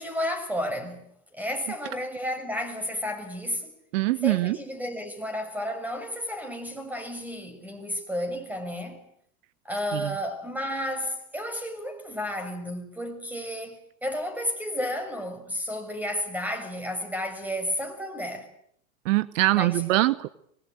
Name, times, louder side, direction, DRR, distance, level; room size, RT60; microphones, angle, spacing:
voice 1, 0.0-3.7 4.2-9.0 9.6-18.5 19.5-19.8, left 1 dB, 5° right, 6.7 m, -32 dB
voice 2, 3.9-4.6 9.9-10.1 19.0-20.3, right 18 dB, 65° right, 1.1 m, -23 dB
24.5 x 22.0 x 9.0 m
hypercardioid pair, 95°, 42 cm